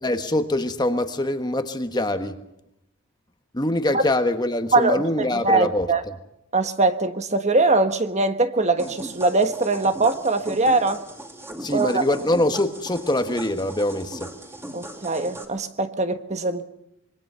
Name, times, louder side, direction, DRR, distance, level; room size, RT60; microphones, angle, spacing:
voice 1, 0.0-2.4 3.5-5.9 11.6-14.3, left 1 dB, 20° left, 1.3 m, -24 dB
voice 2, 4.7-5.0 5.3-6.0 6.5-11.0 11.7-12.0 14.7-16.7, right 3 dB, 30° right, 1.3 m, -22 dB
sound 1, 8.8-15.4, right 1 dB, 10° right, 2.6 m, -38 dB
26.0 x 23.0 x 5.7 m
head